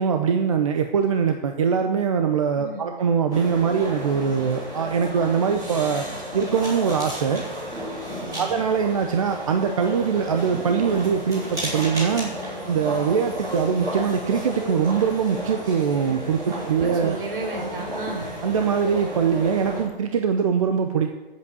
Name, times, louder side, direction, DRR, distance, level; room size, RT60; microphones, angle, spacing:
voice 1, 0.0-6.1 6.3-7.4 8.4-12.3 12.7-17.2 18.4-21.1, right 6 dB, 35° right, 6 dB, 0.7 m, -22 dB
voice 2, 2.6-2.9 8.1-8.6 16.5-18.3, right 3 dB, 65° right, 1 dB, 4.4 m, -34 dB
sound 1, 3.3-19.8, equal, 10° right, 3.8 m, -33 dB
8.2 x 8.1 x 8.3 m, 1.1 s
hypercardioid pair, 165°, 29 cm